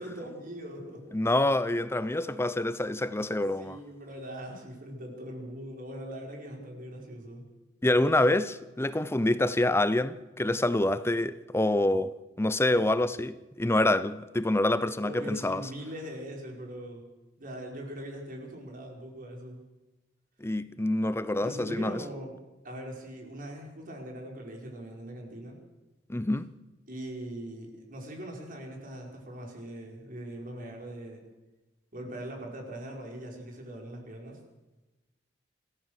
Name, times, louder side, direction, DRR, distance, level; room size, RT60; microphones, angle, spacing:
voice 1, 0.0-1.1 3.6-7.4 15.0-17.0 17.4-19.6 21.4-22.4 22.6-25.6 26.9-31.2 31.9-34.4, right 1 dB, 50° right, 5.1 m, -41 dB
voice 2, 1.1-3.8 7.8-12.1 12.4-15.7 20.4-22.0 26.1-26.5, left 1 dB, 15° left, 0.6 m, -26 dB
26.0 x 15.0 x 6.7 m
head